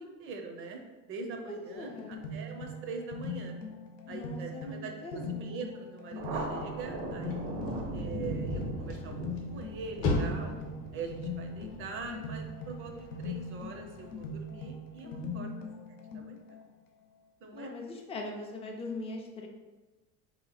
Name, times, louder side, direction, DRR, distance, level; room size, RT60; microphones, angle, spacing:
voice 1, 0.0-3.5 4.1-9.2 9.5-10.5 10.9-15.5 16.1-16.6 17.4-17.7, right 4 dB, 35° right, 3 dB, 0.5 m, -43 dB
voice 2, 1.5-2.2 4.0-5.5 15.0-15.6 17.5-19.5, left 2 dB, 15° left, 1 dB, 0.4 m, -41 dB
sound 1, 1.8-16.6, left 2 dB, 90° left, 0.8 m, -41 dB
Thunder, 6.1-13.2, right 1 dB, 85° right, 1.0 m, -39 dB
sound 2, 6.7-15.0, left 2 dB, 40° left, 0.8 m, -39 dB
4.1 x 2.9 x 4.1 m, 1.2 s
cardioid pair, 165°, 37 cm